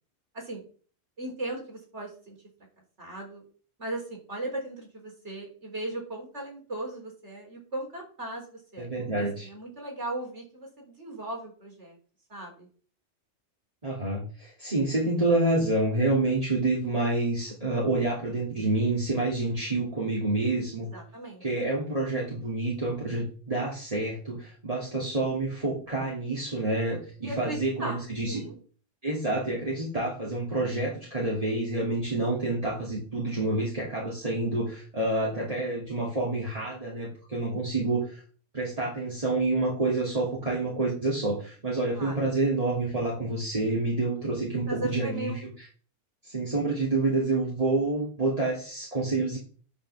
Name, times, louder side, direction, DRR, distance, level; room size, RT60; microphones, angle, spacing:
voice 1, 1.2-2.3 3.0-3.4 3.8-12.0 12.3-12.7 20.9-21.4 27.2-28.6 41.9-42.2 44.7-45.4, right 1 dB, 80° right, 0 dB, 4.2 m, -37 dB
voice 2, 8.8-9.5 13.8-20.9 21.4-28.4 29.0-38.2 38.5-45.7 46.2-49.4, right 2 dB, 30° right, -4 dB, 2.8 m, -28 dB
9.8 x 5.8 x 7.0 m, 0.42 s
omnidirectional pair, 1.2 m